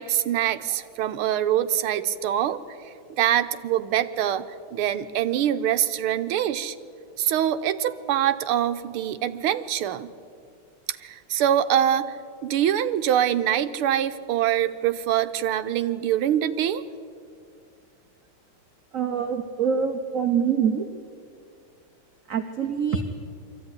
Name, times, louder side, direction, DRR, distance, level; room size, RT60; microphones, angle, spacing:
voice 1, 0.0-2.6 3.2-6.8 7.2-10.1 10.9-12.2 12.4-16.8, right 11 dB, 80° right, 10 dB, 1.7 m, -24 dB
voice 2, 18.9-20.9 22.3-23.0, right 7 dB, 50° right, 6 dB, 1.1 m, -25 dB
23.0 x 15.0 x 9.7 m, 2.3 s
omnidirectional pair, 2.4 m